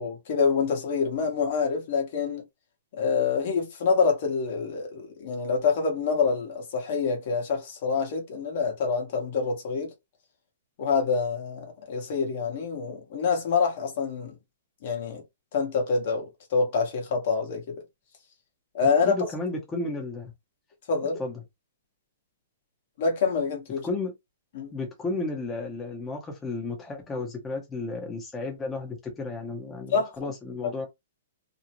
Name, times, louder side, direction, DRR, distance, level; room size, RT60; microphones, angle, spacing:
voice 1, 0.0-2.4 3.0-9.9 10.8-14.3 14.8-15.2 15.5-17.8 18.7-19.2 20.9-21.2 23.0-23.9 24.5-24.7 29.9-30.3, left 5 dB, 55° left, 0.9 m, -26 dB
voice 2, 19.1-20.3 21.2-21.4 23.8-24.1 24.7-30.9, left 3 dB, 15° left, 0.6 m, -33 dB
2.5 x 2.0 x 2.9 m
hypercardioid pair, 140°, 0 cm